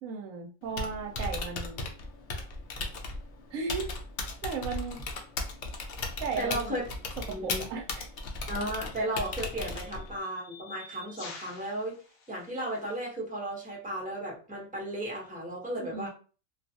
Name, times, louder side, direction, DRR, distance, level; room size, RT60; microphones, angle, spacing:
voice 1, 0.0-1.9 3.5-3.9 4.4-5.0 6.2-6.8 7.3-8.1 15.8-16.1, right 5 dB, 80° right, 3 dB, 1.0 m, -36 dB
Typing, 0.6-10.2, left 3 dB, 65° left, 0.6 m, -37 dB
voice 2, 6.4-6.8 7.3-7.6 8.5-12.0 12.3-16.1, right 1 dB, 5° right, -3 dB, 0.8 m, -34 dB
sound 1, 7.8-7.9 8.9-13.1, left 3 dB, 85° left, 1.1 m, -50 dB
2.4 x 2.4 x 2.7 m, 0.37 s
omnidirectional pair, 1.4 m